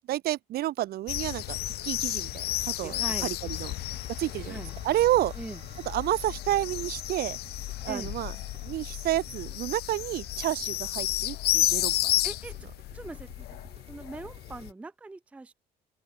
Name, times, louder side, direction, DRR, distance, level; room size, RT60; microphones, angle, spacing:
voice 1, 0.0-1.6 1.8-3.7 4.1-5.3 5.9-7.4 7.8-8.3 8.6-12.2, right 14 dB, 65° right, 0.7 m, -30 dB
sound 1, 1.1-14.7, left 17 dB, 70° left, 0.5 m, -32 dB
sound 2, 1.2-14.7, right 8 dB, 35° right, 0.9 m, -54 dB
voice 2, 2.8-3.3 4.5-4.7 5.4-5.6 7.9-8.1 12.2-12.6 12.9-13.6 13.9-15.5, right 3 dB, 10° right, 0.4 m, -41 dB
open air
cardioid pair, 110°, 17 cm